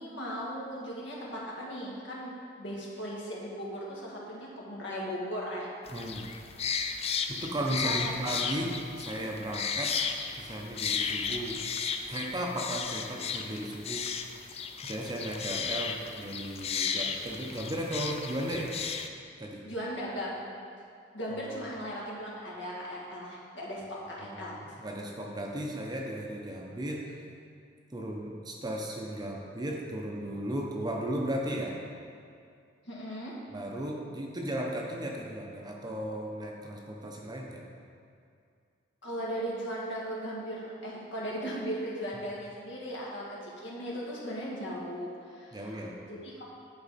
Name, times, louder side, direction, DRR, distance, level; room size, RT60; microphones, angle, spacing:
voice 1, 0.0-2.3 2.6-5.7 7.8-8.1 19.6-20.5 21.1-24.7 32.8-33.4 39.0-46.4, equal, 65° left, -5 dB, 1.7 m, -37 dB
sound 1, 5.9-19.1, left 6 dB, 30° left, 0.4 m, -34 dB
voice 2, 5.9-6.3 7.3-10.0 10.4-11.6 12.1-14.0 14.8-18.8 19.4-19.6 21.5-21.6 24.2-27.1 27.9-31.7 33.5-37.6 45.5-46.0, right 1 dB, 20° right, -1 dB, 0.7 m, -35 dB
10.5 x 4.7 x 4.1 m, 2.3 s
head